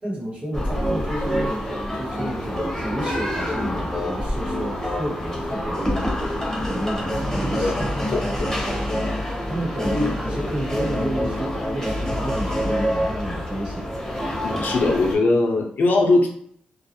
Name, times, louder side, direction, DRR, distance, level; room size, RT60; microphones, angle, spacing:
voice 1, 0.0-7.8 9.4-13.9, equal, 35° right, -3 dB, 1.1 m, -30 dB
sound 1, 0.5-15.2, equal, 15° left, 0.8 m, -26 dB
voice 2, 14.4-16.3, left 2 dB, 70° left, 0 dB, 0.6 m, -20 dB
2.3 x 2.0 x 2.8 m, 0.62 s
cardioid pair, 65°, 3 cm